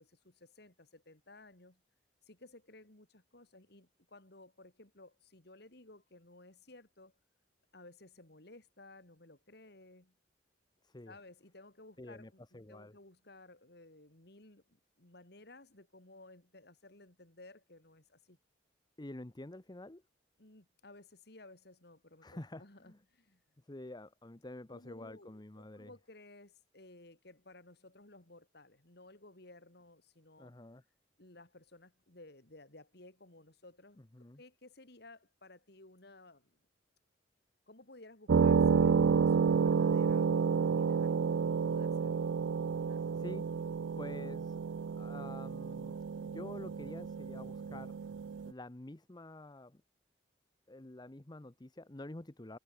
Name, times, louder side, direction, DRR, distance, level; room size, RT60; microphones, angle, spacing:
voice 1, 0.0-1.8 2.2-7.1 7.7-10.1 11.1-14.6 15.0-18.4 20.4-23.4 24.7-30.5 31.2-36.6 37.7-43.0, left 2 dB, 60° left, 3.2 m, -57 dB
voice 2, 10.8-11.1 12.0-12.9 19.0-20.0 22.2-23.0 23.7-25.9 30.4-30.8 34.1-34.4 43.2-43.5 44.0-44.6 44.9-48.0 48.4-49.8 50.7-52.6, left 1 dB, 20° left, 0.8 m, -48 dB
sound 1, 38.3-48.5, right 6 dB, 85° right, 0.4 m, -30 dB
head